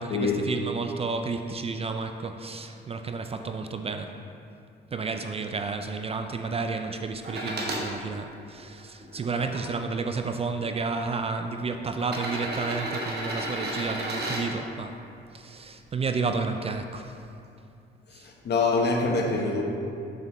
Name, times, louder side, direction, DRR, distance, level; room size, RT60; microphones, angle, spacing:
voice 1, 0.0-4.2 4.9-14.9 15.3-17.1 18.1-18.3, right 4 dB, 30° right, 6 dB, 0.4 m, -31 dB
sound 1, 7.2-7.9 8.6-9.6 10.6-10.7 12.0-14.5 16.3-16.4, right 1 dB, 55° right, 1.2 m, -32 dB
voice 2, 18.2-19.6, left 3 dB, 55° left, 1 dB, 1.0 m, -25 dB
6.7 x 6.6 x 3.0 m, 2.5 s
cardioid pair, 90°, 20 cm